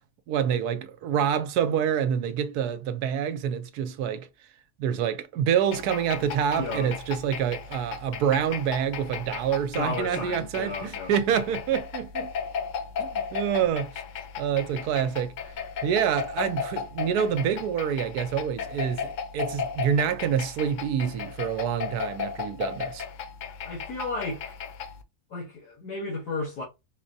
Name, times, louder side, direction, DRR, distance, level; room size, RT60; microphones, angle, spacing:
voice 1, 0.3-4.3 4.8-12.3 13.0-13.9 14.4-15.3 15.8-23.0, right 8 dB, 80° right, 1.1 m, -27 dB
sound 1, 5.7-25.0, left 7 dB, 65° left, 0.9 m, -35 dB
voice 2, 6.6-6.9 9.7-11.1 23.6-24.6 25.3-26.6, left 3 dB, 90° left, 1.6 m, -33 dB
4.7 x 2.0 x 2.6 m
omnidirectional pair, 1.6 m